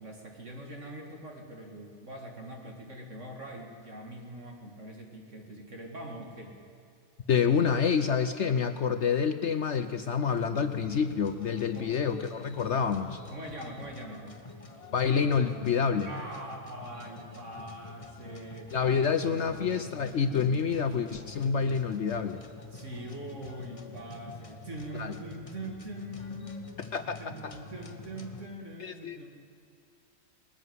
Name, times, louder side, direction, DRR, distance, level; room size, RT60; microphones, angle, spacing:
voice 1, 0.0-6.6 11.7-11.9 13.3-14.4 16.1-19.0 19.3-19.5 22.7-26.8 27.2-29.3, right 1 dB, 50° right, 1 dB, 2.4 m, -42 dB
voice 2, 7.3-13.2 14.9-16.1 18.7-22.4 24.9-25.1 26.9-27.6 28.8-29.2, left 6 dB, 55° left, 9 dB, 0.9 m, -28 dB
sound 1, 10.3-28.5, left 3 dB, 25° left, 1.1 m, -47 dB
20.0 x 14.0 x 9.4 m, 2.4 s
omnidirectional pair, 1.6 m